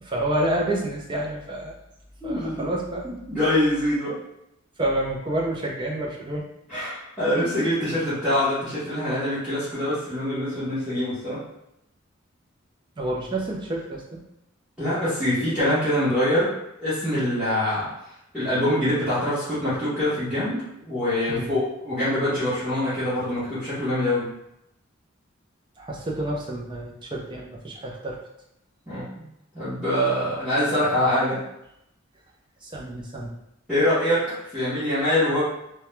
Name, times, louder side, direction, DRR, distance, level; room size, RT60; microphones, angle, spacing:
voice 1, 0.0-1.8 2.2-3.1 4.8-6.4 13.0-14.2 21.3-21.5 25.8-28.2 32.6-33.4, right 1 dB, 25° right, -2 dB, 0.4 m, -29 dB
voice 2, 2.2-2.7 3.0-4.2 6.7-11.4 14.8-16.5 16.8-17.9 18.3-24.3 28.9-29.0 29.5-31.4 33.7-35.4, left 1 dB, 5° right, -15 dB, 0.8 m, -24 dB
2.2 x 2.1 x 2.9 m, 0.82 s
head